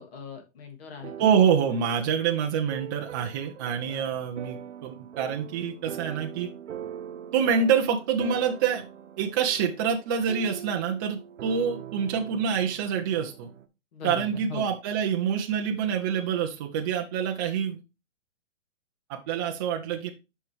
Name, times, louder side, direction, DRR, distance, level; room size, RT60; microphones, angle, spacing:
voice 1, 0.0-1.1 3.9-4.2 13.9-14.7, left 6 dB, 55° left, 2.7 m, -40 dB
sound 1, 1.0-13.7, right 9 dB, 70° right, 0.9 m, -42 dB
voice 2, 1.2-6.5 7.3-8.9 9.2-13.5 14.0-17.8 19.1-20.1, right 7 dB, 20° right, 0.5 m, -26 dB
7.3 x 5.5 x 3.3 m
hypercardioid pair, 140°, 37 cm